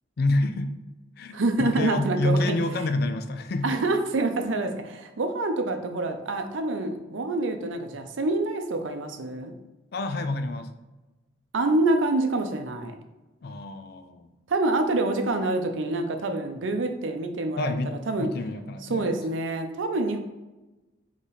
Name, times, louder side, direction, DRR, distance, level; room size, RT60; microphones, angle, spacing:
voice 1, 0.2-0.8 1.2-3.7 9.9-10.7 13.4-14.3 17.6-19.1, left 2 dB, 55° left, 8 dB, 0.4 m, -28 dB
voice 2, 1.3-2.4 3.6-9.5 11.5-12.9 14.5-17.7 18.1-18.3 18.9-20.2, right 2 dB, 90° right, 6 dB, 0.6 m, -26 dB
4.0 x 3.1 x 3.9 m, 1.1 s
head